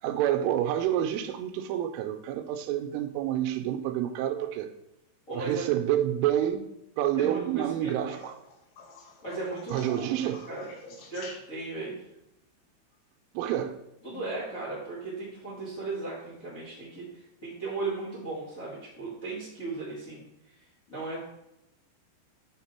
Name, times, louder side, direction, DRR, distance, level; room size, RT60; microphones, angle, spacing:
voice 1, 0.0-4.7 5.3-6.7 7.0-8.4 9.7-10.4 13.3-13.8, right 11 dB, 85° right, 3.0 m, -28 dB
voice 2, 5.3-5.7 7.2-8.2 9.2-9.8 10.5-10.7 11.1-12.0 14.0-20.5 20.9-21.2, right 3 dB, 35° left, 1.3 m, -36 dB
sound 1, 8.2-11.9 14.0-14.5 16.2-16.3, left 3 dB, 65° left, 2.8 m, -48 dB
7.2 x 6.6 x 4.4 m
omnidirectional pair, 5.7 m